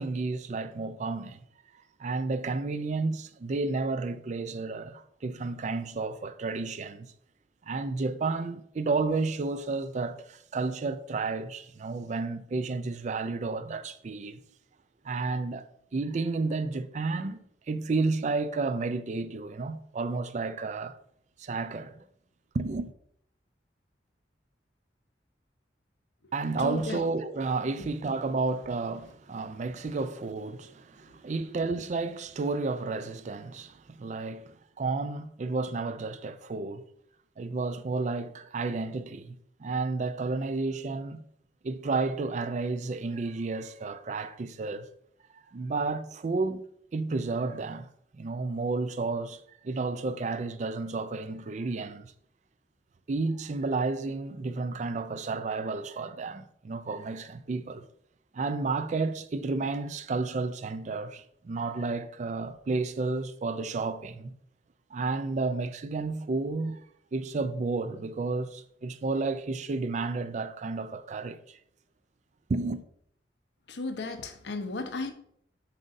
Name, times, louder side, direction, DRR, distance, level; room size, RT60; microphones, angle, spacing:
voice 1, 0.0-1.4 2.0-7.1 7.7-14.4 15.0-15.6 15.9-17.4 17.7-21.0 21.4-22.0 22.5-22.9 26.3-36.9 37.4-41.2 41.6-44.9 45.5-46.6 46.9-47.9 48.1-52.1 53.1-57.8 58.3-64.3 64.9-66.9 67.1-71.6 72.5-72.8, right 3 dB, 40° right, 0.4 m, -31 dB
voice 2, 26.6-27.0 73.7-75.1, left 2 dB, 75° left, 0.7 m, -34 dB
7.4 x 5.2 x 2.6 m
head